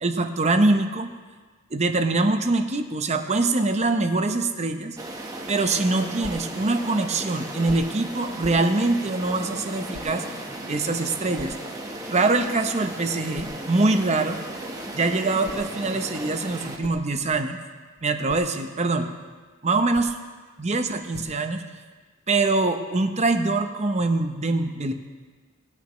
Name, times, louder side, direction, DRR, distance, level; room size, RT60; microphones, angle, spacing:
voice 1, 0.0-1.1 1.7-5.0 5.5-10.2 10.7-11.6 12.1-14.4 14.9-17.6 18.0-19.1 19.6-20.2 20.6-21.6 22.3-24.9, right 3 dB, 30° right, 6 dB, 0.8 m, -23 dB
sound 1, 5.0-16.8, right 1 dB, 15° right, 1.1 m, -36 dB
sound 2, 6.2-6.5 7.6-8.0 8.4-8.7 9.9-10.2 11.4-11.6 13.3-13.6 15.2-15.8 16.5-17.5 18.0-18.5 19.8-20.3 21.1-21.5, left 2 dB, 50° left, 0.6 m, -43 dB
19.5 x 9.4 x 3.1 m, 1.4 s
head